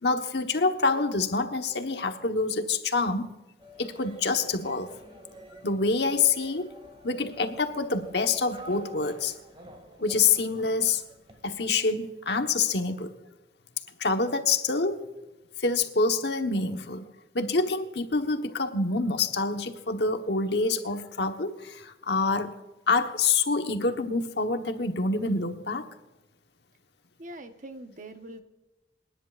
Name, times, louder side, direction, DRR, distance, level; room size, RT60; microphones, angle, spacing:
voice 1, 0.0-3.3 3.8-4.9 5.6-6.7 7.0-9.3 10.0-11.0 11.4-13.1 14.0-15.0 15.6-17.1 17.3-22.5 22.9-25.9, left 4 dB, 70° left, 6 dB, 1.2 m, -26 dB
sound 1, 3.6-11.9, equal, 30° right, 2.2 m, -49 dB
voice 2, 27.2-28.4, right 1 dB, 45° right, 7 dB, 1.1 m, -43 dB
28.0 x 10.5 x 2.5 m, 1.1 s
head